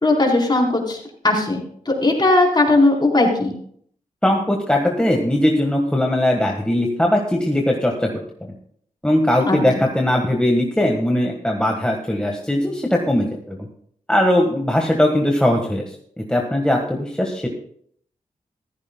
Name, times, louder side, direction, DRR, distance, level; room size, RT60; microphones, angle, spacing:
voice 1, 0.0-3.5 9.4-9.6, left 2 dB, 30° left, -1 dB, 3.9 m, -18 dB
voice 2, 4.2-8.1 8.4-8.5 9.0-13.6 14.1-15.8 16.2-17.5, left 1 dB, 5° left, 0 dB, 1.5 m, -19 dB
15.0 x 14.0 x 2.2 m, 0.63 s
cardioid pair, 65°, 14 cm